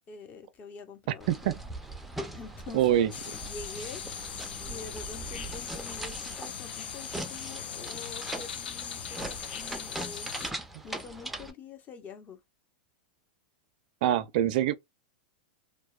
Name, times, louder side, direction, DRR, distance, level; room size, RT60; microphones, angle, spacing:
voice 1, 0.0-1.3 2.3-3.1 3.4-4.0 4.7-10.3 10.8-12.4, left 4 dB, 30° left, 0.7 m, -45 dB
sound 1, 1.2-11.5, right 1 dB, 5° right, 0.4 m, -41 dB
voice 2, 2.7-3.1 14.0-14.7, right 12 dB, 60° right, 0.4 m, -24 dB
sound 2, 3.1-10.5, left 8 dB, 85° left, 0.3 m, -40 dB
2.7 x 2.1 x 2.3 m
hypercardioid pair, 115°, 5 cm